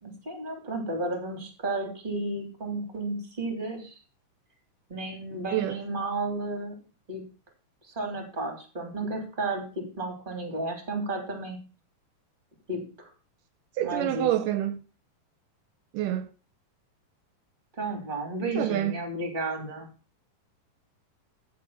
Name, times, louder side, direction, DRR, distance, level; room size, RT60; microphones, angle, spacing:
voice 1, 0.0-3.9 4.9-6.7 7.1-7.2 7.8-11.6 12.7-13.1 13.8-14.3 17.8-19.9, right 2 dB, 15° right, 2.6 m, -33 dB
voice 2, 13.8-14.8 15.9-16.3 18.6-18.9, right 12 dB, 80° right, 2.2 m, -27 dB
14.0 x 4.9 x 7.0 m
omnidirectional pair, 3.9 m